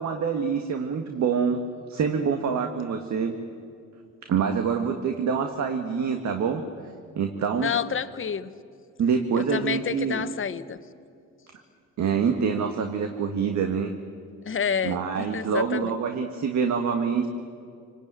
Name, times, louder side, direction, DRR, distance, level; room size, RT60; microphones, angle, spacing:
voice 1, 0.0-1.6 1.9-3.3 4.2-6.6 7.1-7.7 9.0-10.3 12.0-13.9 14.8-17.3, right 6 dB, 65° right, 5 dB, 1.8 m, -26 dB
voice 2, 7.6-8.5 9.3-10.8 14.4-15.9, left 7 dB, 45° left, 12 dB, 1.2 m, -29 dB
27.5 x 19.0 x 9.1 m, 2.3 s
cardioid pair, 90°, 30 cm